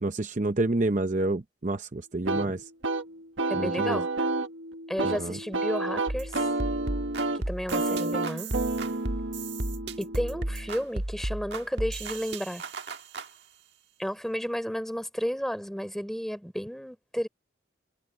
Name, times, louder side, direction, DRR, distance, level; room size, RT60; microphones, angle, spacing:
voice 1, 0.0-2.6 3.5-4.0 5.0-5.4, right 2 dB, 40° right, 0.7 m, -28 dB
sound 1, 2.3-10.8, right 2 dB, 90° right, 1.6 m, -30 dB
voice 2, 3.5-4.1 4.9-6.3 7.5-8.5 10.0-12.6 14.0-17.3, equal, ahead, 3.4 m, -32 dB
sound 2, 6.1-13.3, right 2 dB, 60° right, 1.6 m, -34 dB
head